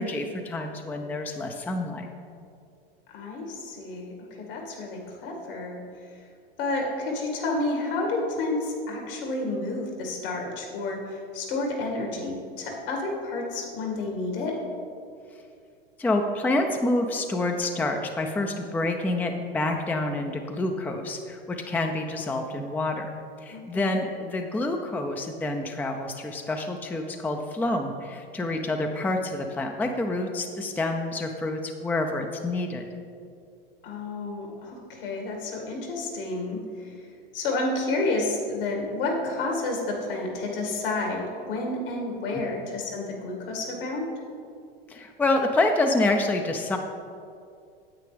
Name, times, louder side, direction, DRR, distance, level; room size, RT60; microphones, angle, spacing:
voice 1, 0.0-2.1 16.0-23.1 23.4-32.9 42.3-42.4 44.9-46.8, left 2 dB, 5° left, 4 dB, 0.5 m, -27 dB
voice 2, 3.1-5.8 6.6-14.6 23.5-24.0 33.8-36.9 37.3-44.0, left 2 dB, 70° left, 0 dB, 2.1 m, -30 dB
9.4 x 8.4 x 3.4 m, 2.4 s
hypercardioid pair, 90°, 29 cm